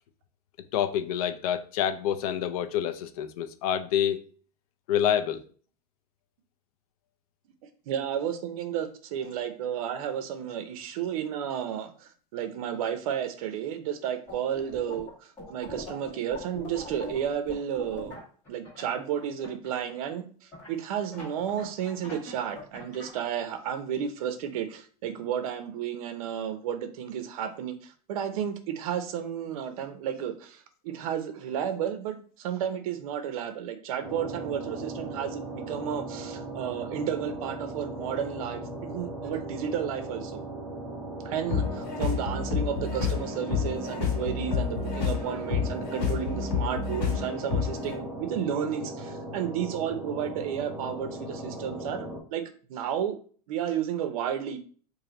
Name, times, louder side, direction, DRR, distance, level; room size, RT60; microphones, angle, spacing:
voice 1, 0.7-4.2 4.9-5.4, left 9 dB, 70° left, 10 dB, 0.5 m, -27 dB
voice 2, 7.9-18.2 18.5-40.4 41.2-52.4 52.7-53.2 53.5-54.6, right 9 dB, 65° right, 8 dB, 0.7 m, -32 dB
sound 1, 14.3-15.1 15.4-19.8 20.5-23.2, left 2 dB, 15° left, 1.6 m, -41 dB
sound 2, 34.0-52.2, right 2 dB, 5° right, 0.5 m, -38 dB
sound 3, 41.5-47.9, left 6 dB, 85° left, 1.4 m, -29 dB
3.2 x 2.7 x 3.8 m, 0.42 s
supercardioid pair, 170°, 20 cm